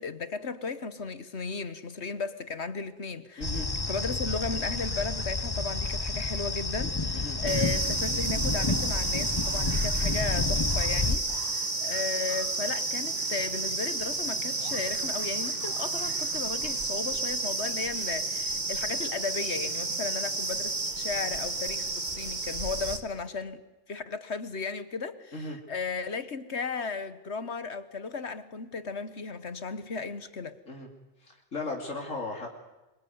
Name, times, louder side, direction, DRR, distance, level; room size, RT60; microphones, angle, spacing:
voice 1, 0.0-3.5 3.9-23.6 23.9-30.6, left 4 dB, 60° left, 13 dB, 1.5 m, -35 dB
voice 2, 3.4-3.7 7.1-7.4 25.3-25.6 30.7-30.9 31.2-32.5, left 3 dB, 80° left, 1 dB, 3.3 m, -36 dB
sound 1, 3.4-11.2, left 3 dB, 20° left, 1.0 m, -29 dB
sound 2, 7.5-23.0, right 3 dB, 35° right, 1.8 m, -31 dB
sound 3, 8.7-13.4 13.7-17.0, equal, 20° right, 7.0 m, -52 dB
26.5 x 24.0 x 9.5 m, 1.1 s
omnidirectional pair, 1.3 m